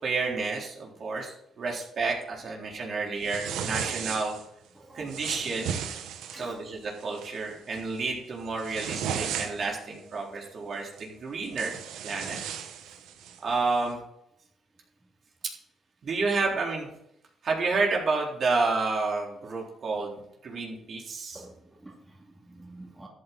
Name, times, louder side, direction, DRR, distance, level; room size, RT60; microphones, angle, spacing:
voice 1, 0.0-4.4 4.9-5.8 6.4-11.8 12.0-12.4 13.4-14.0 16.0-16.9 17.4-21.4, right 3 dB, 55° right, -1 dB, 3.8 m, -30 dB
sound 1, 3.2-4.4 5.1-6.5 7.0-7.3 7.7-8.0 8.4-9.8 11.0-11.1 11.4-13.4, right 8 dB, 90° right, 1.3 m, -35 dB
voice 2, 4.7-5.2 6.1-6.6 10.3-10.4 13.3-13.4 21.3-23.1, right 2 dB, 15° right, -2 dB, 2.7 m, -50 dB
13.5 x 8.8 x 4.1 m, 0.76 s
cardioid pair, 90°, 0 cm